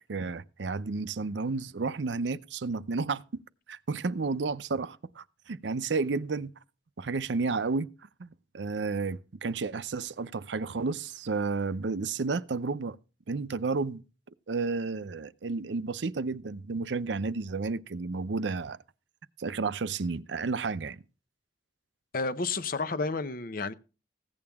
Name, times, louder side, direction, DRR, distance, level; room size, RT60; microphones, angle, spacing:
voice 1, 0.1-3.4 3.7-6.5 7.0-7.9 8.2-13.0 13.3-14.0 14.5-18.8 19.4-21.0, right 4 dB, 80° right, 0.6 m, -32 dB
voice 2, 22.1-23.7, left 3 dB, 55° left, 0.8 m, -31 dB
15.5 x 8.7 x 3.5 m
head